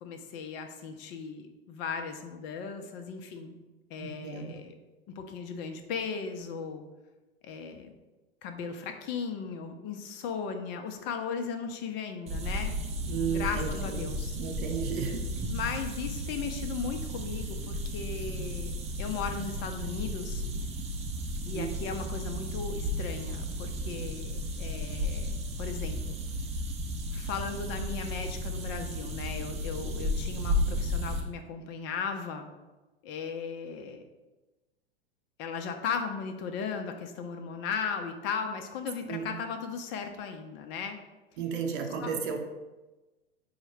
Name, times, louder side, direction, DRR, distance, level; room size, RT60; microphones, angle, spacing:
voice 1, 0.0-3.6 3.9-4.7 5.1-6.8 7.4-7.9 8.4-12.7 13.3-14.4 15.5-18.7 19.0-20.4 21.5-26.2 27.1-32.5 33.0-34.0 35.4-41.0 42.0-42.1, left 6 dB, 35° left, 6 dB, 0.6 m, -36 dB
voice 2, 4.0-4.5 13.0-15.3 21.5-21.7 39.1-39.4 41.4-42.4, right 6 dB, 55° right, 3 dB, 0.7 m, -34 dB
sound 1, 12.3-31.2, equal, 20° right, 0.5 m, -34 dB
4.6 x 2.1 x 4.6 m, 1.1 s
hypercardioid pair, 100°, 32 cm